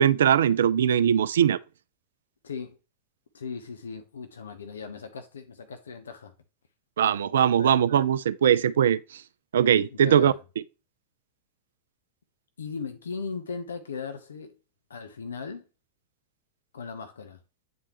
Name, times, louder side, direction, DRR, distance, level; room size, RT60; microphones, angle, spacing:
voice 1, 0.0-1.6 7.0-9.0 9.5-10.3, right 9 dB, 65° right, 0.4 m, -21 dB
voice 2, 2.4-2.8 3.3-6.3 7.6-7.7 9.9-10.4 12.6-14.5 14.9-15.7 16.7-17.4, left 5 dB, 70° left, 0.7 m, -38 dB
8.6 x 4.3 x 3.0 m
figure-of-eight pair, 90°, 0 cm